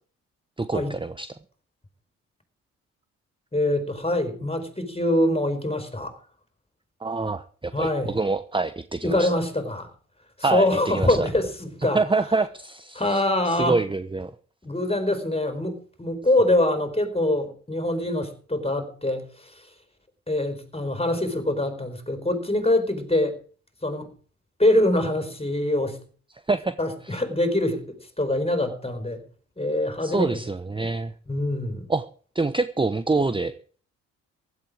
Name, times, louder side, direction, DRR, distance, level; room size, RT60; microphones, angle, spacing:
voice 1, 0.6-1.3 7.0-9.3 10.4-11.3 11.9-14.3 26.5-26.7 27.0-27.2 30.0-31.1 31.9-32.0 32.3-33.5, right 3 dB, 15° right, 0.9 m, -26 dB
voice 2, 3.5-6.2 7.7-8.1 9.0-9.9 10.5-12.0 12.9-13.8 14.6-19.7 20.3-23.4 23.8-24.1 24.6-26.0 26.8-29.2 29.6-30.3 30.8-30.9 31.3-31.9, left 1 dB, 15° left, 4.7 m, -24 dB
16.0 x 11.5 x 5.0 m
hypercardioid pair, 45°, 35 cm